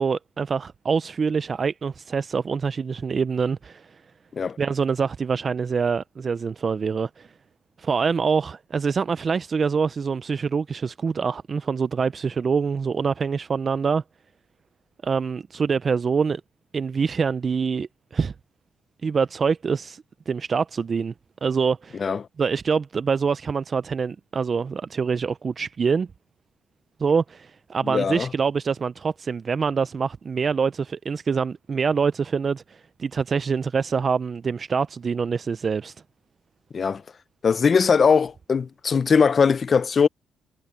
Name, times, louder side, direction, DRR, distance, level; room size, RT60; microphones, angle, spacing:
voice 1, 0.0-4.0 4.6-7.3 7.8-14.0 15.0-16.4 16.7-18.3 19.0-21.1 21.4-22.0 22.4-26.1 27.0-35.9, right 5 dB, 40° right, 0.4 m, -25 dB
voice 2, 27.8-28.3 36.7-37.0 37.4-40.1, left 6 dB, 40° left, 0.6 m, -20 dB
cardioid pair, 90°, 0 cm